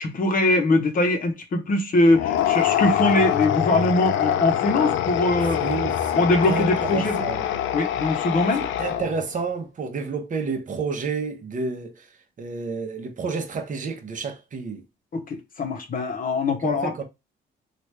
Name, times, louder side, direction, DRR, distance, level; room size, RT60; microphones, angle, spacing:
voice 1, 0.0-5.6 6.1-7.2 7.7-8.6 15.1-17.0, left 2 dB, 45° left, 0.8 m, -22 dB
sound 1, 2.1-9.3, left 10 dB, 75° left, 0.4 m, -24 dB
voice 2, 5.6-7.4 8.8-11.9 12.4-14.8 16.6-17.0, right 4 dB, 40° right, 0.8 m, -30 dB
3.1 x 2.4 x 3.1 m
cardioid pair, 90°, 20 cm